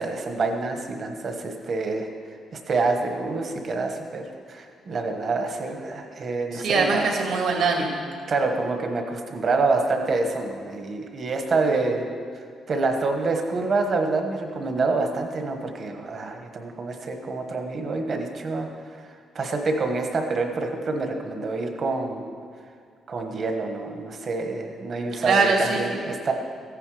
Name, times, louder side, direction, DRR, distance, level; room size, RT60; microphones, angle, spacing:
voice 1, 0.0-2.1 2.5-4.2 4.5-7.1 8.3-12.1 12.7-19.1 19.3-22.2 23.1-26.3, right 3 dB, 40° right, 4 dB, 1.2 m, -27 dB
voice 2, 6.5-7.9 25.2-26.0, right 4 dB, 65° right, 0 dB, 2.2 m, -22 dB
14.5 x 9.8 x 4.9 m, 2.2 s
cardioid pair, 165°, 0 cm